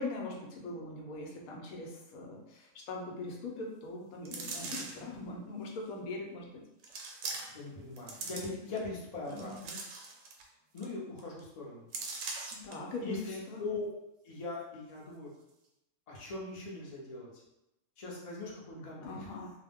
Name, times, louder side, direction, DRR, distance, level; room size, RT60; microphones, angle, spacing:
voice 1, 0.0-6.6 9.3-9.6 12.5-13.6 19.0-19.5, left 2 dB, 90° left, 0 dB, 1.1 m, -41 dB
sound 1, 4.2-5.1 5.9-6.0 6.8-7.7 8.0-8.8 9.3-10.5 10.8-10.9 11.2-11.4 11.9-12.7 13.2-13.3, right 3 dB, 70° right, 0.9 m, -41 dB
voice 2, 7.5-9.8 10.7-11.8 13.0-13.9 14.2-15.3 16.1-17.3 18.0-19.3, left 3 dB, 40° left, -4 dB, 0.6 m, -41 dB
2.4 x 2.1 x 3.4 m, 0.89 s
omnidirectional pair, 1.5 m